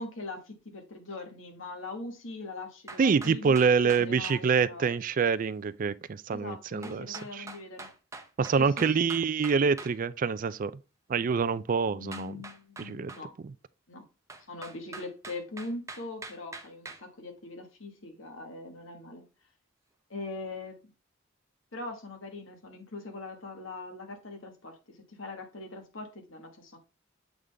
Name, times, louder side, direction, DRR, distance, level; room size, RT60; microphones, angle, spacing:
voice 1, 0.0-4.9 6.3-7.9 8.6-9.1 11.9-13.3 13.9-14.1 14.5-19.2 20.1-20.8 21.7-26.8, left 2 dB, 80° left, 1.6 m, -41 dB
sound 1, 2.9-4.4 6.8-9.9 12.1-13.2 14.3-17.0, right 3 dB, 15° right, 0.8 m, -44 dB
voice 2, 3.0-7.5 8.4-10.7 11.1-12.4 12.8-13.1, right 5 dB, 45° right, 0.4 m, -26 dB
7.9 x 3.8 x 3.3 m
head